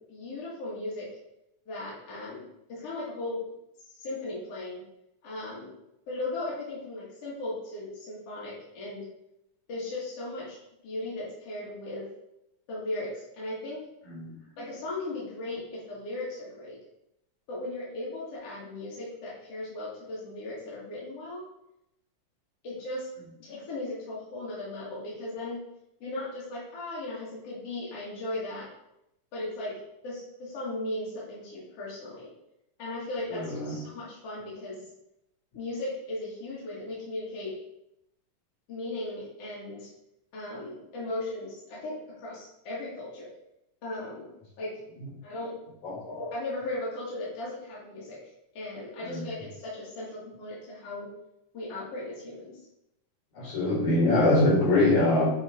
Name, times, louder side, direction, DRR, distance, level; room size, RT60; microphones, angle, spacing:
voice 1, 0.1-1.1 1.7-3.4 4.0-4.8 5.2-5.7 6.1-9.0 9.7-10.6 10.8-12.0 12.7-13.8 14.6-16.8 17.5-21.4 22.6-23.1 23.4-25.6 26.0-28.7 29.3-29.7 30.0-32.3 32.8-34.8 35.5-37.5 38.7-39.9 40.3-43.3 43.8-44.3 44.6-44.7 45.2-45.5 46.0-48.2 48.5-50.1 50.4-51.1 51.5-52.6, left 2 dB, 55° left, -8 dB, 2.8 m, -37 dB
voice 2, 33.3-33.8 45.8-46.0 49.0-49.3 53.3-55.3, left 2 dB, 70° left, -5 dB, 3.8 m, -23 dB
7.7 x 5.2 x 3.6 m, 0.84 s
omnidirectional pair, 3.6 m